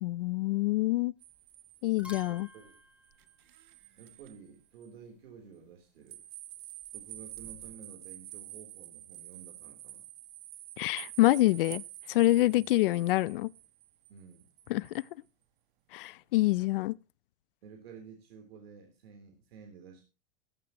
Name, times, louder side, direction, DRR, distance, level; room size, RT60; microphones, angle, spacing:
voice 1, 0.0-1.1 1.8-2.5 10.8-11.8 12.1-13.5 14.7-14.9 15.9-16.9, left 18 dB, 65° left, 0.5 m, -26 dB
sound 1, 1.2-1.5 1.8-4.3 6.8-7.7, left 2 dB, 5° right, 2.7 m, -53 dB
sound 2, 1.2-4.4 4.8-4.9 6.1-15.1, right 14 dB, 55° right, 1.3 m, -48 dB
voice 2, 2.2-2.8 4.0-6.2 6.9-10.1 12.5-12.7 14.1-14.5 17.6-20.0, right 6 dB, 80° right, 3.6 m, -52 dB
15.0 x 15.0 x 3.0 m
supercardioid pair, 170°, 30 cm